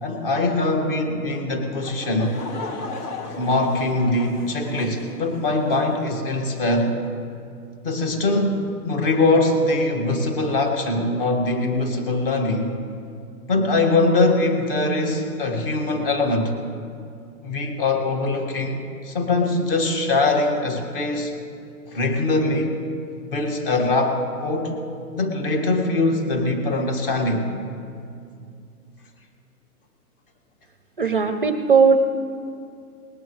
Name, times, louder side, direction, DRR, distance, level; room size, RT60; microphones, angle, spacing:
voice 1, 0.0-2.4 3.4-7.0 7.8-12.7 13.5-16.5 17.4-21.3 21.9-22.8 23.3-24.8 25.1-27.5, left 2 dB, 35° left, 4 dB, 1.8 m, -22 dB
Laughter / Crowd, 1.8-6.0, left 3 dB, 80° left, 1.7 m, -36 dB
voice 2, 31.0-32.0, right 5 dB, 40° right, 9 dB, 0.5 m, -17 dB
20.0 x 19.0 x 3.2 m, 2.4 s
hypercardioid pair, 170°, 45 cm